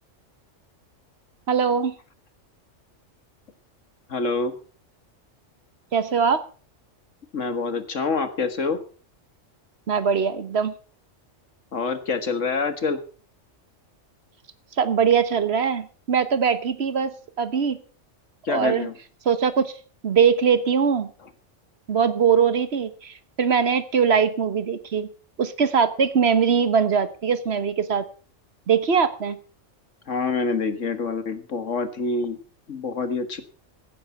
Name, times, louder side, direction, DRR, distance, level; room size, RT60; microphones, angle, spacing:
voice 1, 1.5-1.9 5.9-6.4 9.9-10.7 14.8-17.8 18.5-18.9 19.2-19.7 20.0-21.1 21.9-25.1 25.4-28.0 28.7-29.4, right 6 dB, 60° right, 13 dB, 1.3 m, -21 dB
voice 2, 4.1-4.6 7.3-8.8 11.7-13.0 18.5-18.9 30.1-32.4 32.7-33.4, left 4 dB, 75° left, 10 dB, 2.0 m, -26 dB
16.0 x 9.9 x 5.6 m, 0.39 s
omnidirectional pair, 1.3 m